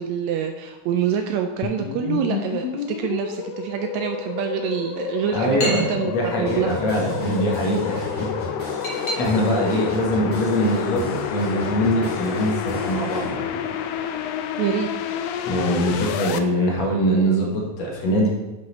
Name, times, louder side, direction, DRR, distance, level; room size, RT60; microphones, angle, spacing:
voice 1, 0.0-7.3 9.7-9.8 14.6-15.2, right 8 dB, 80° right, 6 dB, 1.7 m, -26 dB
sound 1, 1.6-16.4, left 8 dB, 85° left, 1.4 m, -29 dB
sound 2, 4.8-14.7, equal, 35° left, 2.5 m, -38 dB
voice 2, 5.3-8.3 9.1-13.4 15.5-18.3, equal, 65° left, -2 dB, 2.6 m, -23 dB
sound 3, 6.4-13.3, right 1 dB, 25° right, 2.8 m, -36 dB
10.5 x 5.6 x 4.0 m, 1.1 s
omnidirectional pair, 3.5 m